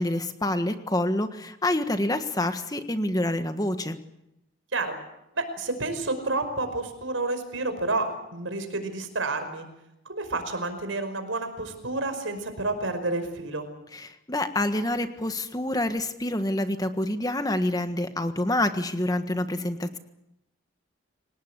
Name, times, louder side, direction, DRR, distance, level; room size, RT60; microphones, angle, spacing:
voice 1, 0.0-4.0 13.9-20.0, left 1 dB, 20° left, 9 dB, 1.5 m, -27 dB
voice 2, 5.3-9.7 10.1-13.7, right 2 dB, 80° right, 8 dB, 5.3 m, -30 dB
29.5 x 18.5 x 8.4 m, 0.88 s
head